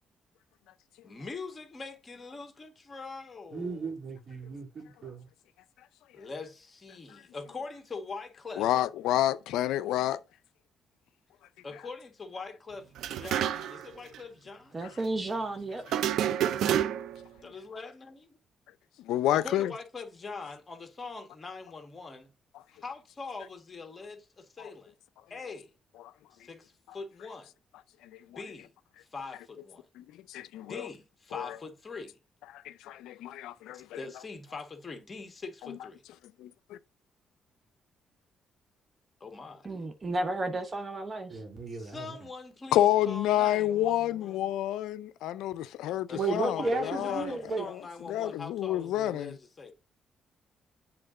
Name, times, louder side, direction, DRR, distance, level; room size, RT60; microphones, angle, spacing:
voice 1, 1.0-3.9 6.1-8.7 11.6-14.8 17.4-18.2 19.3-22.3 22.8-24.9 25.3-25.7 26.3-27.5 28.3-28.7 29.0-29.9 30.6-32.2 33.7-36.0 39.2-39.8 41.8-44.5 46.1-49.7, left 4 dB, 30° left, 1.6 m, -43 dB
voice 2, 3.5-5.3 41.3-42.2 46.1-47.7, right 4 dB, 50° right, 2.6 m, -34 dB
voice 3, 8.6-10.2 19.0-19.7 28.1-28.2 30.0-30.9 31.3-31.6 32.5-33.9 36.4-36.8 42.7-47.3 47.6-47.8 48.1-49.4, left 13 dB, 90° left, 0.4 m, -29 dB
sound 1, 13.0-13.9 14.1-14.2 15.9-17.2, right 10 dB, 80° right, 0.4 m, -29 dB
voice 4, 14.7-15.8 39.6-41.4, right 2 dB, 30° right, 0.8 m, -33 dB
7.9 x 3.7 x 3.7 m
cardioid pair, 90°, 0 cm